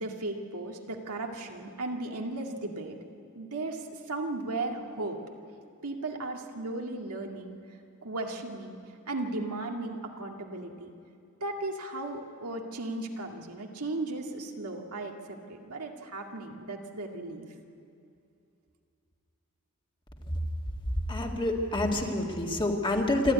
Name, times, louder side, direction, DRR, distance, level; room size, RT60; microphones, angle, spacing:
voice 1, 0.0-3.0 3.3-5.2 5.8-7.6 8.0-8.8 9.1-10.9 11.4-17.5, right 2 dB, 80° right, 1 dB, 2.2 m, -36 dB
voice 2, 21.1-23.3, left 1 dB, 20° left, 1 dB, 2.0 m, -27 dB
28.0 x 12.5 x 9.5 m, 2.5 s
head